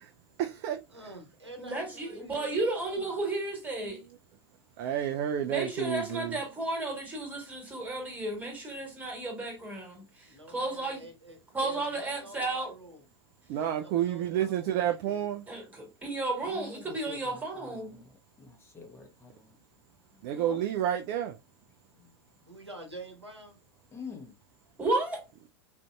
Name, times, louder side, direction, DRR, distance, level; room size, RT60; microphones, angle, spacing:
voice 1, 0.4-0.8 4.8-6.4 13.5-15.4 20.2-21.3, right 10 dB, 45° right, 0.3 m, -30 dB
voice 2, 0.9-3.1 10.3-13.0 13.5-15.2 22.5-23.6, right 1 dB, 90° right, 1.0 m, -48 dB
voice 3, 1.6-4.0 5.4-11.0 11.5-12.7 15.5-18.0 20.2-20.6 24.8-25.2, right 2 dB, 10° right, 1.5 m, -33 dB
voice 4, 16.5-17.9 18.4-19.5 23.9-24.3, left 5 dB, 20° left, 0.8 m, -46 dB
4.3 x 2.5 x 2.2 m
figure-of-eight pair, 90°, 14 cm